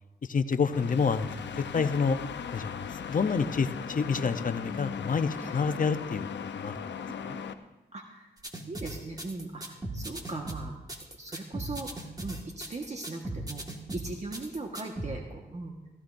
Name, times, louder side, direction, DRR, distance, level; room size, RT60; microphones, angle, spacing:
voice 1, 0.3-1.3 1.7-2.2 2.5-6.8, left 5 dB, 45° left, 10 dB, 0.8 m, -28 dB
sound 1, 0.7-7.5, left 7 dB, 75° left, 0.8 m, -38 dB
voice 2, 1.5-1.9 5.4-5.5 7.1-7.4 7.9-8.3 8.7-10.8 11.2-13.6 13.9-15.7, right 3 dB, 40° right, 1 dB, 1.5 m, -39 dB
sound 2, 8.4-15.1, right 1 dB, 20° right, 1.9 m, -38 dB
16.0 x 16.0 x 2.7 m, 1.1 s
cardioid pair, 75°, 18 cm